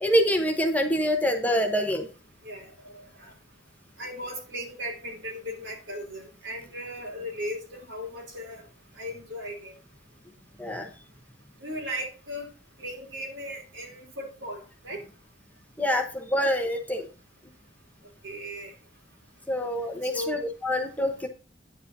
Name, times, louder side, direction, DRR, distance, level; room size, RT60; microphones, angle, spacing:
voice 1, 0.0-2.1 10.6-10.9 15.8-17.1 19.5-21.3, equal, 10° left, 4 dB, 0.9 m, -26 dB
voice 2, 2.4-3.3 4.0-8.6 8.9-9.7 11.6-12.5 12.8-15.0 18.2-18.7 20.0-20.3, equal, 75° right, 1 dB, 3.3 m, -37 dB
9.9 x 7.7 x 2.7 m, 0.35 s
head